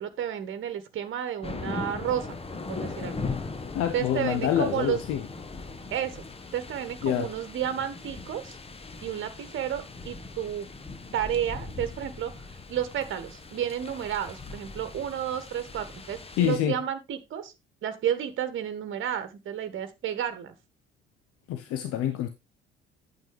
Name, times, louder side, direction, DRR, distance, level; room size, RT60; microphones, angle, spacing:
voice 1, 0.0-2.3 2.7-3.2 3.9-5.0 5.9-6.2 6.5-8.6 9.0-10.7 11.1-12.3 12.7-17.5 17.8-20.5, right 10 dB, 45° right, 1.4 m, -31 dB
sound 1, 1.4-16.6, left 3 dB, 20° left, 1.2 m, -39 dB
voice 2, 3.7-5.2 7.0-7.3 16.4-16.8 21.5-22.3, left 10 dB, 50° left, 0.9 m, -26 dB
8.9 x 7.9 x 3.4 m
figure-of-eight pair, 50°, 29 cm